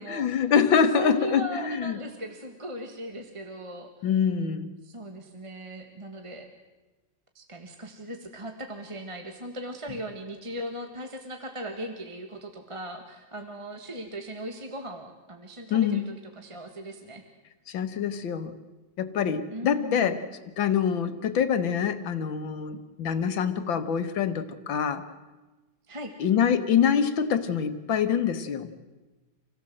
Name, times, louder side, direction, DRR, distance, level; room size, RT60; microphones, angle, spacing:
voice 1, 0.0-2.0 4.0-4.7 15.7-16.1 17.7-18.5 19.0-20.2 20.6-25.0 26.2-28.7, left 7 dB, 80° left, 11 dB, 2.0 m, -25 dB
voice 2, 0.9-4.1 4.8-6.5 7.3-16.0 16.3-17.2 19.5-20.2 25.9-26.1, right 1 dB, 15° right, 4 dB, 1.7 m, -38 dB
27.0 x 17.0 x 7.8 m, 1.2 s
omnidirectional pair, 2.1 m